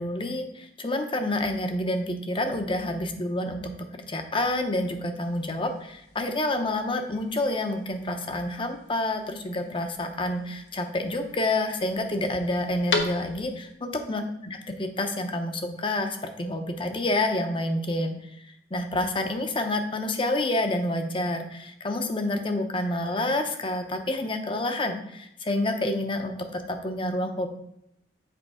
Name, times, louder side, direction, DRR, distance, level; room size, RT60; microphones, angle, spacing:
voice 1, 0.0-14.2 14.8-18.1 18.7-27.5, left 1 dB, 30° left, 6 dB, 0.7 m, -28 dB
sound 1, 5.2-13.7, left 3 dB, 80° left, 1.0 m, -38 dB
7.7 x 3.6 x 4.9 m, 0.79 s
head